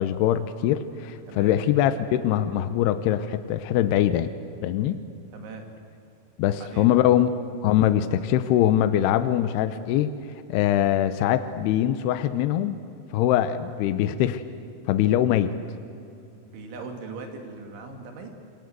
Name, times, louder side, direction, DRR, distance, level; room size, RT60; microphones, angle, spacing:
voice 1, 0.0-4.3 4.6-5.0 6.4-7.3 7.6-10.1 10.5-12.8 13.1-14.4 14.9-15.5, left 11 dB, 80° left, 10 dB, 2.4 m, -22 dB
voice 2, 1.3-1.6 5.3-5.6 6.5-6.9 16.4-18.3, right 4 dB, 75° right, 3 dB, 5.0 m, -40 dB
27.5 x 24.0 x 8.0 m, 2.6 s
omnidirectional pair, 5.6 m